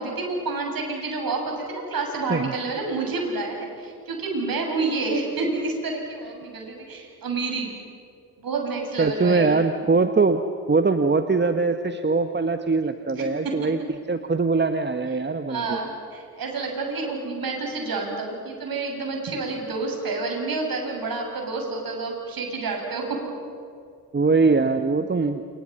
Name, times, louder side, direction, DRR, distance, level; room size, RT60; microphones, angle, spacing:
voice 1, 0.0-7.7 8.4-9.6 13.4-13.5 15.5-23.2, right 3 dB, 50° right, 1 dB, 7.7 m, -29 dB
voice 2, 9.0-10.4 10.7-13.8 14.1-15.8 24.1-25.4, right 4 dB, 25° right, 8 dB, 1.4 m, -22 dB
29.5 x 29.0 x 5.7 m, 2.4 s
hypercardioid pair, 45°, 45 cm